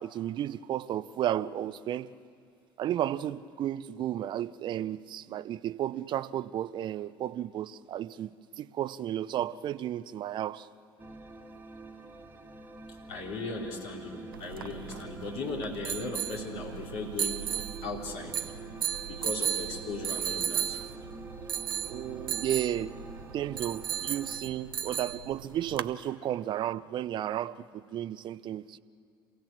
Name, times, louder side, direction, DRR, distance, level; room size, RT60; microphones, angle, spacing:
voice 1, 0.0-2.1 2.8-10.7 21.9-23.0 23.3-28.8, right 11 dB, 40° right, 0.6 m, -33 dB
sound 1, 11.0-24.4, right 3 dB, 15° right, 1.8 m, -47 dB
voice 2, 12.9-17.5 17.8-18.8 19.0-20.8, left 3 dB, 60° left, 4.3 m, -37 dB
sound 2, 14.3-25.9, right 9 dB, 80° right, 0.6 m, -35 dB
27.0 x 16.5 x 7.5 m
figure-of-eight pair, 65°, 12 cm